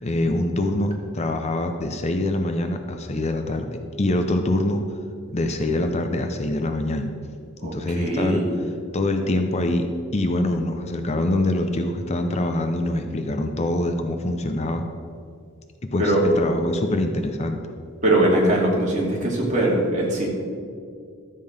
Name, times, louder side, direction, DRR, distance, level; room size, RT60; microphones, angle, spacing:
voice 1, 0.0-4.8 5.3-7.1 7.6-8.4 8.9-14.9 15.9-17.6, left 1 dB, 30° left, 6 dB, 0.6 m, -24 dB
voice 2, 7.6-8.6 16.0-16.2 18.0-20.3, right 1 dB, 35° right, -3 dB, 2.5 m, -21 dB
12.5 x 7.6 x 5.1 m, 2.3 s
head